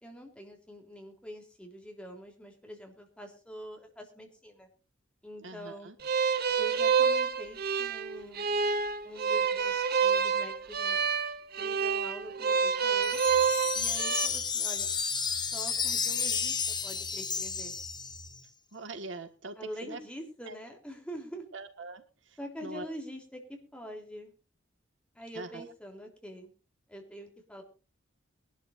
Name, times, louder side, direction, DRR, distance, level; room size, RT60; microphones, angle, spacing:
voice 1, 0.0-4.7 5.2-5.9 6.6-8.5 9.0-9.7 10.0-11.0 11.6-13.2 13.7-14.9 15.5-17.7 19.6-21.4 22.4-24.3 25.2-26.5 26.9-27.6, equal, 5° left, 2 dB, 3.5 m, -45 dB
voice 2, 5.4-6.0 18.7-20.0 20.5-20.6 21.5-22.9 25.4-25.7, right 3 dB, 70° right, 8 dB, 1.7 m, -43 dB
sound 1, 6.0-14.3, right 6 dB, 50° right, 1.2 m, -28 dB
Wind chime, 13.0-18.4, left 6 dB, 20° left, 1.4 m, -32 dB
sound 2, 13.1-18.4, right 2 dB, 65° left, 6.2 m, -54 dB
22.5 x 12.5 x 2.6 m, 0.35 s
head